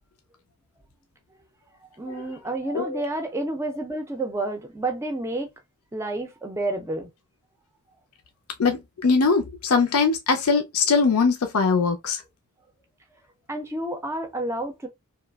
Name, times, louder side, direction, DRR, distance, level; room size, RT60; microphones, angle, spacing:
voice 1, 2.0-5.5 5.9-7.1 13.5-14.9, right 2 dB, 10° right, 0.4 m, -30 dB
voice 2, 8.6-12.2, left 4 dB, 80° left, 0.5 m, -21 dB
2.9 x 2.4 x 2.2 m
head